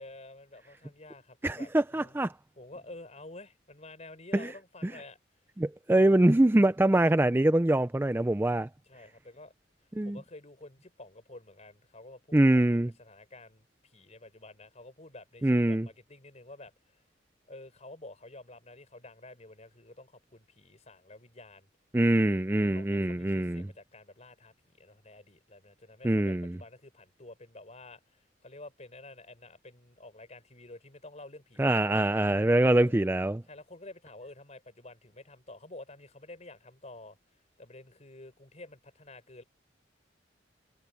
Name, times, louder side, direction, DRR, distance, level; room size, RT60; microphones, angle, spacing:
voice 1, 0.0-2.2 2.6-5.2 5.9-6.3 8.9-9.5 10.0-17.0 17.5-21.7 22.5-32.1 32.7-33.0 33.5-37.2 37.6-39.4, left 2 dB, 40° left, 4.7 m, -50 dB
voice 2, 1.4-2.3 4.3-4.5 4.8-4.9 5.6-8.7 10.0-10.2 12.3-12.9 15.4-15.9 21.9-23.7 26.0-26.6 31.6-33.4, right 1 dB, 10° right, 0.4 m, -24 dB
head